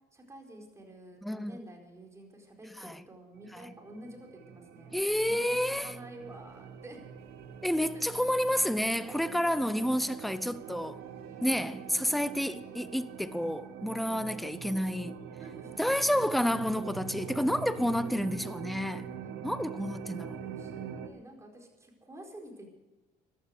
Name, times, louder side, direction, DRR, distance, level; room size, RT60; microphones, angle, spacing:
voice 1, 0.1-5.0 5.2-7.0 7.8-8.5 11.3-11.4 11.8-11.9 12.4-12.8 15.4-16.0 19.2-19.3 19.7-19.9 20.2-22.7, right 1 dB, 15° right, 4.5 m, -50 dB
voice 2, 1.2-1.6 2.8-3.0 3.5-3.7 4.9-6.0 7.6-11.0 11.4-15.2 15.8-19.1 19.4-20.4, equal, ahead, 0.7 m, -30 dB
sound 1, 3.3-21.1, right 8 dB, 85° right, 1.5 m, -44 dB
sound 2, 6.2-12.9, right 4 dB, 70° right, 2.8 m, -59 dB
15.0 x 12.0 x 6.7 m
cardioid pair, 110°, 17 cm